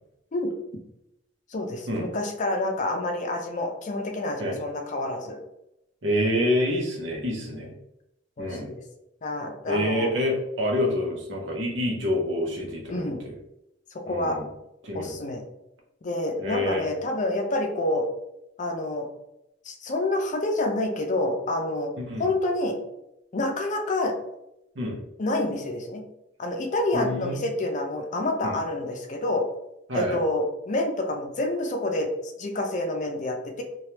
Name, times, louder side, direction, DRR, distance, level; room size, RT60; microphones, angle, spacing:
voice 1, 1.5-5.4 7.5-7.7 8.4-8.8 9.2-10.1 12.9-13.2 14.1-14.4 14.9-15.4 16.0-18.1 18.6-19.1 19.7-21.9 22.2-22.8 23.3-24.1 25.2-26.0 26.4-29.5 29.9-33.6, left 2 dB, 40° left, 3 dB, 0.5 m, -28 dB
voice 2, 6.0-7.7 8.4-8.7 9.7-13.3 14.1-14.5 14.8-15.1 16.4-16.9 22.0-22.3 24.8-25.0 26.9-27.4 28.4-28.5 29.9-30.2, left 1 dB, 75° right, 0 dB, 0.8 m, -27 dB
3.2 x 2.3 x 2.8 m, 0.85 s
head